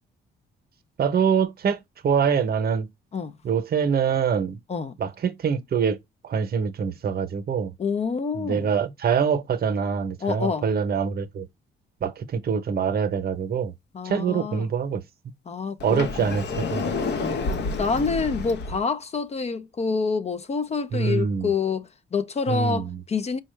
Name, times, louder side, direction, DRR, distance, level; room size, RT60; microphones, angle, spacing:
voice 1, 1.0-2.9 3.4-4.6 5.0-6.0 6.2-7.7 8.3-11.5 12.0-13.7 14.0-15.0 15.8-16.9 20.9-21.5 22.5-23.0, right 6 dB, 50° right, 0.8 m, -24 dB
voice 2, 7.8-8.7 10.2-10.6 13.9-14.6 15.5-16.1 17.2-23.4, left 5 dB, 35° left, 0.5 m, -27 dB
Sliding door, 15.8-18.8, left 3 dB, 60° left, 0.8 m, -29 dB
4.3 x 2.2 x 3.2 m
cardioid pair, 90°, 20 cm